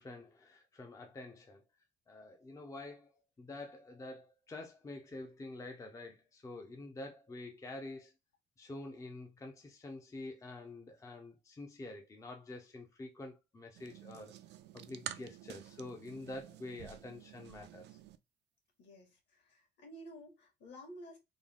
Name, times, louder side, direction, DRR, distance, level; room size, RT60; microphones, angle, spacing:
voice 1, 0.0-1.6 2.1-8.1 8.6-14.4 14.7-18.0, left 2 dB, 15° left, 0.5 m, -47 dB
sound 1, 13.7-18.2, right 11 dB, 65° right, 0.4 m, -49 dB
voice 2, 18.8-21.2, equal, 65° left, 1.7 m, -52 dB
3.6 x 2.2 x 3.4 m
cardioid pair, 145°, 19 cm